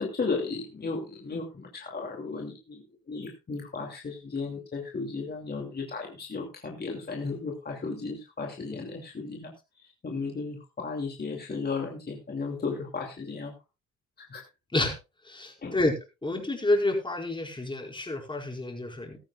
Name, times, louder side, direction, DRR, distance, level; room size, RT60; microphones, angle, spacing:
voice 1, 0.0-13.5 14.2-14.5 15.6-15.8, left 4 dB, 30° left, 1 dB, 2.6 m, -35 dB
voice 2, 15.2-15.9 16.2-19.2, left 2 dB, 15° left, 2 dB, 4.9 m, -29 dB
16.5 x 13.5 x 2.4 m, 0.27 s
cardioid pair, 90°, 30 cm